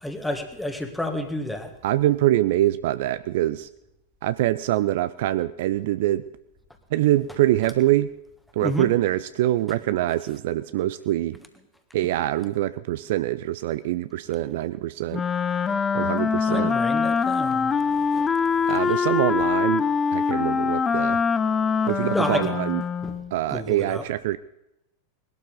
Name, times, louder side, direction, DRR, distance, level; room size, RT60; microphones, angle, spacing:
voice 1, 0.0-1.7 8.6-8.9 16.5-18.3 22.1-22.5 23.0-23.1 23.5-24.0, left 1 dB, 5° left, 6 dB, 1.6 m, -30 dB
voice 2, 1.8-3.7 4.2-6.3 6.9-8.1 8.5-11.4 11.9-15.3 15.9-16.7 18.7-19.8 20.1-21.2 21.8-22.8 23.3-24.4, right 14 dB, 55° right, 15 dB, 0.4 m, -24 dB
Wind instrument woodwind instrument, 15.1-23.3, left 6 dB, 20° left, 0.6 m, -24 dB
20.5 x 12.0 x 3.9 m, 0.84 s
figure-of-eight pair, 90°, 0 cm